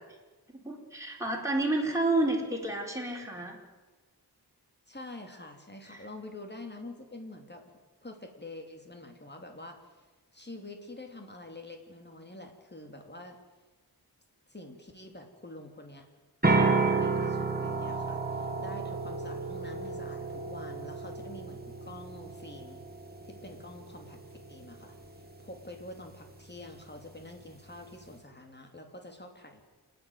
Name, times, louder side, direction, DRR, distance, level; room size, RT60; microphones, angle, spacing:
voice 1, 0.5-3.6 5.9-6.0, right 2 dB, 5° right, -1 dB, 4.8 m, -30 dB
voice 2, 4.9-7.7 8.0-10.0 10.3-13.4 14.5-16.1 16.4-22.8 23.2-25.0 25.4-29.6, left 2 dB, 25° left, 4 dB, 3.2 m, -47 dB
sound 1, 16.4-28.2, right 3 dB, 25° right, 2.4 m, -33 dB
28.0 x 10.5 x 9.4 m, 1.2 s
wide cardioid pair, 80°, 40 cm